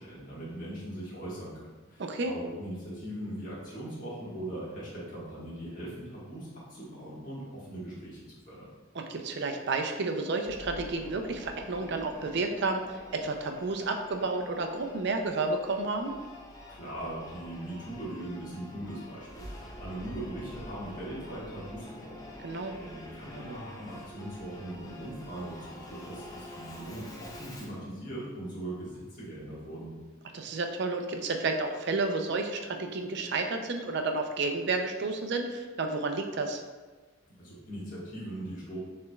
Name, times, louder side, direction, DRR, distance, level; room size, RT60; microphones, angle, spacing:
voice 1, 0.0-8.7 16.7-29.9 37.4-38.8, right 1 dB, 40° left, -8 dB, 1.4 m, -40 dB
voice 2, 2.0-2.3 8.9-16.1 22.4-22.7 30.3-36.6, right 3 dB, 55° right, 5 dB, 0.4 m, -31 dB
Singing / Musical instrument, 10.5-27.8, left 1 dB, 15° left, 0.4 m, -47 dB
6.8 x 3.2 x 2.3 m, 1.3 s
head